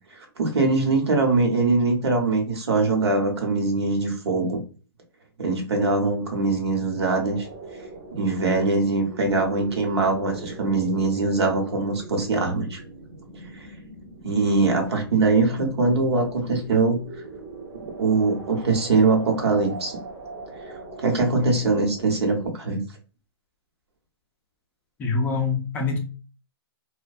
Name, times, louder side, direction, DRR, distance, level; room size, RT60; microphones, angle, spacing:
voice 1, 0.1-4.6 5.4-7.5 8.1-12.8 13.5-13.7 14.2-17.0 18.0-20.0 20.7-22.8, right 3 dB, 90° right, 0.9 m, -22 dB
sound 1, 7.2-22.5, right 3 dB, 30° right, 0.6 m, -41 dB
voice 2, 25.0-26.0, left 4 dB, 15° left, 0.3 m, -24 dB
2.5 x 2.2 x 2.3 m
hypercardioid pair, 150°, 13 cm